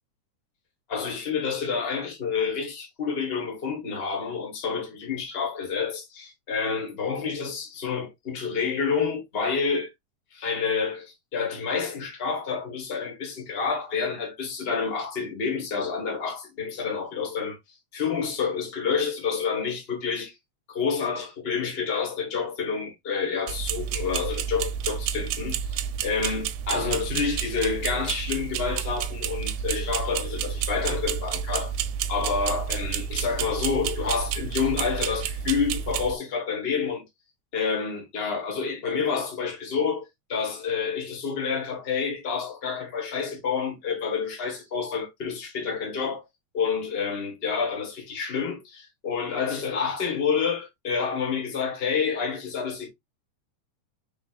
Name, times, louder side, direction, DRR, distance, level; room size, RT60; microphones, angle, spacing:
voice 1, 0.9-9.9 10.3-17.6 17.9-20.3 20.7-31.7 32.1-37.0 37.5-46.2 46.5-52.9, left 5 dB, 55° left, 0.6 m, -28 dB
sound 1, 23.5-36.2, right 8 dB, 80° right, 1.9 m, -30 dB
4.8 x 3.8 x 2.4 m
omnidirectional pair, 3.6 m